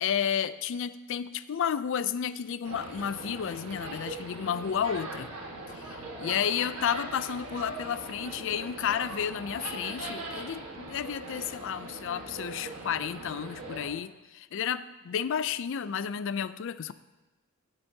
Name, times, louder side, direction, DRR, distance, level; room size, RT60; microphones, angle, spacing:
voice 1, 0.0-5.3 5.8-16.9, left 8 dB, 60° left, 15 dB, 0.4 m, -32 dB
sound 1, 2.6-13.9, right 2 dB, 90° right, 1.5 m, -41 dB
16.5 x 7.9 x 2.7 m, 1.1 s
head